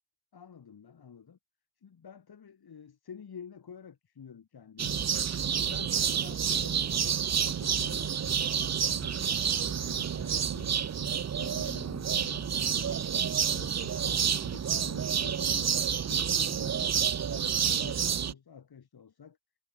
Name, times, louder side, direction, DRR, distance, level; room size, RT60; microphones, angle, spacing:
voice 1, 0.3-1.4 1.8-5.1 5.6-12.9 13.4-16.9 17.3-19.4, left 7 dB, 55° left, 2.0 m, -49 dB
sound 1, 4.8-18.3, right 8 dB, 40° right, 0.6 m, -29 dB
wide cardioid pair, 95°, 45 cm